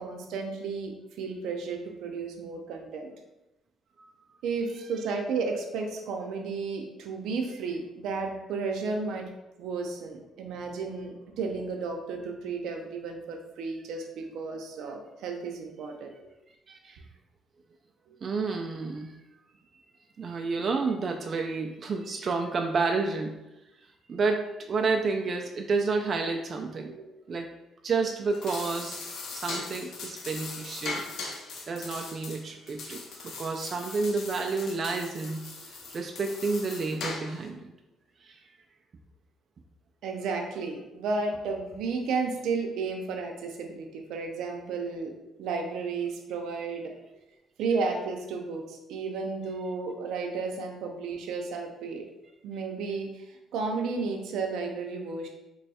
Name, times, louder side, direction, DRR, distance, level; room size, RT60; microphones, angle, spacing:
voice 1, 0.0-3.1 4.4-9.3 9.6-16.1 26.9-27.0 40.0-45.1 45.4-46.9 47.6-52.0 52.4-55.3, right 4 dB, 85° right, 2 dB, 0.6 m, -33 dB
voice 2, 16.7-17.0 18.2-19.1 20.2-23.3 24.1-26.9 27.3-27.5 27.8-31.0 31.7-33.0 33.3-35.4 35.7-37.7 38.2-38.4, right 4 dB, 40° right, 2 dB, 0.3 m, -30 dB
sound 1, 28.2-37.5, left 3 dB, 65° left, 0.6 m, -40 dB
3.1 x 2.3 x 4.1 m, 0.95 s
cardioid pair, 130°, 0 cm